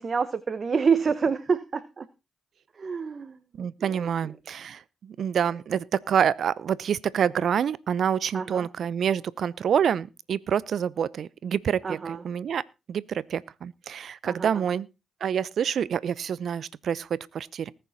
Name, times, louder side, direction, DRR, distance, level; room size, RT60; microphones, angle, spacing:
voice 1, 0.0-2.1 2.7-4.3 8.3-8.7 11.8-12.2 14.2-14.6, right 5 dB, 50° right, 1.0 m, -28 dB
voice 2, 3.6-12.6 12.9-14.9 15.2-17.7, right 8 dB, 65° right, 0.7 m, -27 dB
20.0 x 6.8 x 4.1 m
hypercardioid pair, 45°, 0 cm